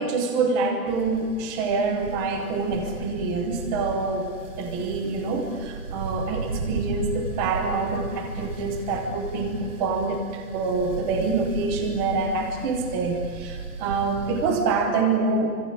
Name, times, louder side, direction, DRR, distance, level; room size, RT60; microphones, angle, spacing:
voice 1, 0.0-4.3 4.6-15.5, right 3 dB, 5° right, 5 dB, 0.8 m, -26 dB
sound 1, 0.8-14.6, right 4 dB, 55° right, 6.3 m, -35 dB
27.5 x 24.5 x 8.3 m, 2.1 s
hypercardioid pair, 170°, 45 cm